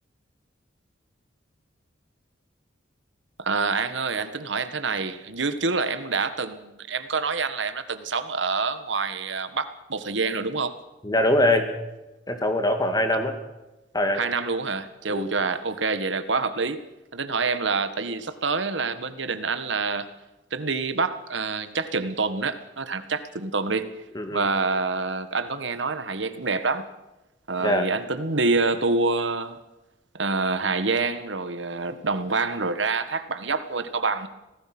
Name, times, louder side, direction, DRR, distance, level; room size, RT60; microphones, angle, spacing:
voice 1, 3.4-10.7 14.1-16.8 17.1-20.1 20.5-23.9 24.3-26.9 27.5-29.6 30.1-34.3, right 4 dB, 70° right, 11 dB, 1.6 m, -27 dB
voice 2, 11.0-11.7 12.3-13.4 13.9-14.2 15.1-15.3 24.1-24.5 27.6-27.9, left 1 dB, 20° left, 6 dB, 1.9 m, -23 dB
26.0 x 17.5 x 6.1 m, 0.99 s
head